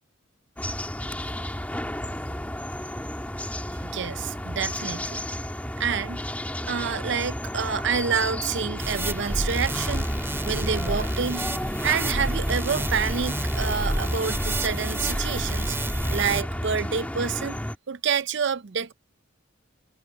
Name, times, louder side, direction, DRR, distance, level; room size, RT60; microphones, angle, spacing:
sound 1, 0.6-17.8, left 1 dB, 5° left, 2.8 m, -32 dB
voice 1, 3.7-5.2 5.8-6.2 6.6-10.1 10.4-17.6 17.9-18.9, right 6 dB, 60° right, 0.6 m, -28 dB
sound 2, 8.8-16.4, right 1 dB, 10° right, 2.4 m, -29 dB
head